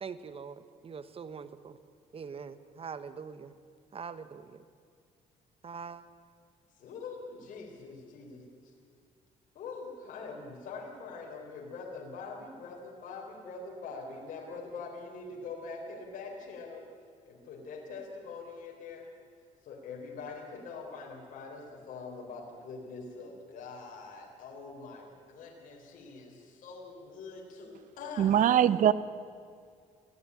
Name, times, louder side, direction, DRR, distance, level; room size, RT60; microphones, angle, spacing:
voice 1, 0.0-1.8 2.1-3.5 3.9-4.6 5.6-6.0, right 6 dB, 40° right, 13 dB, 1.3 m, -43 dB
voice 2, 6.8-8.7 9.5-16.9 17.2-19.1 19.6-28.3, left 4 dB, 65° left, -1 dB, 4.3 m, -44 dB
voice 3, 28.2-28.9, right 10 dB, 65° right, 16 dB, 0.9 m, -22 dB
23.5 x 16.5 x 9.9 m, 2.2 s
cardioid pair, 85°, 14 cm